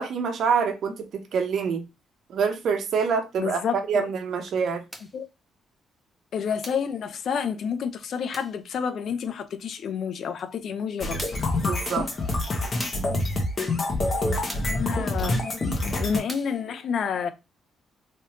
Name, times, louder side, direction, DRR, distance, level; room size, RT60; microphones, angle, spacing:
voice 1, 0.0-1.8 2.3-4.8 11.6-12.1, right 6 dB, 65° right, 0.8 m, -26 dB
voice 2, 3.4-4.1 5.1-5.3 6.3-11.2 14.7-15.4 16.0-17.3, left 7 dB, 60° left, 0.5 m, -29 dB
sound 1, 4.9-5.2 6.6-6.9 8.3-8.6 10.4-10.5 11.2-11.6 12.8-13.2 14.5-14.8 16.3-16.6, equal, ahead, 0.8 m, -40 dB
sound 2, 11.0-16.2, left 2 dB, 40° left, 1.2 m, -26 dB
3.2 x 3.1 x 2.9 m
cardioid pair, 90°, 0 cm